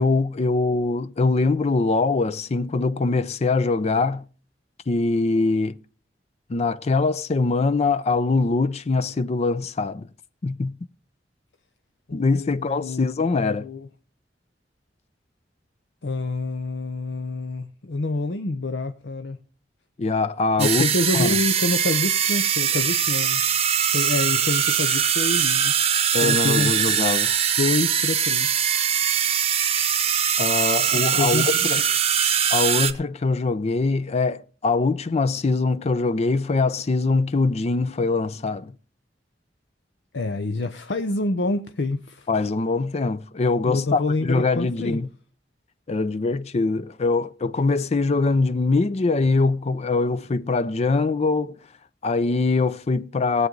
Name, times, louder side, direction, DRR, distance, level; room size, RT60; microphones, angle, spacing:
voice 1, 0.0-4.2 4.9-5.7 6.5-10.1 10.4-10.7 12.1-13.7 20.0-20.8 21.1-21.4 26.1-27.3 30.4-31.8 32.5-38.7 42.3-45.1 45.9-51.6 52.0-53.5, left 3 dB, 35° left, 0.5 m, -23 dB
voice 2, 12.1-13.0 13.3-13.9 16.0-19.4 20.6-23.4 23.9-25.7 26.2-26.7 27.6-28.8 30.9-31.7 40.1-42.3 43.7-45.0, left 2 dB, 75° left, 0.7 m, -27 dB
sound 1, 20.6-32.9, right 8 dB, 35° right, 0.8 m, -22 dB
19.0 x 8.1 x 3.9 m
head